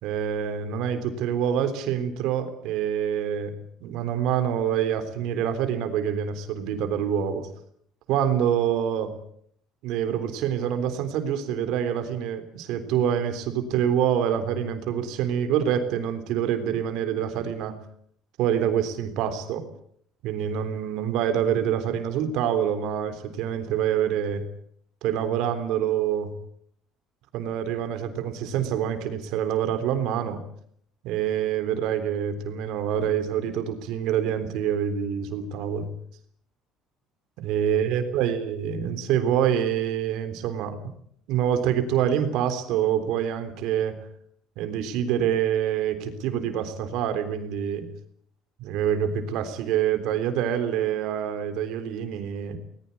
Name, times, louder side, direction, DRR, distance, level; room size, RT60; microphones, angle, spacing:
voice 1, 0.0-3.5 3.8-7.5 8.1-9.2 9.8-17.8 18.4-19.7 20.2-24.4 25.0-26.3 27.3-30.4 31.0-35.9 37.4-40.8 41.3-44.0 44.6-47.9 48.6-52.6, right 9 dB, 70° right, 9 dB, 3.6 m, -26 dB
20.5 x 20.0 x 8.5 m, 0.65 s
cardioid pair, 150°, 0 cm